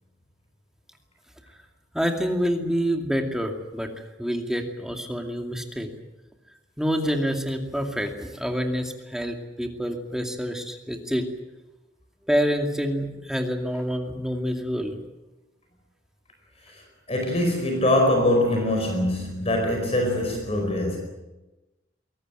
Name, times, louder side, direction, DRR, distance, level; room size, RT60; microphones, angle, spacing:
voice 1, 1.9-3.9 4.2-5.9 6.8-11.3 12.3-15.0, equal, 5° right, 3 dB, 2.4 m, -27 dB
voice 2, 17.1-21.0, left 1 dB, 35° left, 2 dB, 4.8 m, -23 dB
22.5 x 18.5 x 9.2 m, 1.1 s
head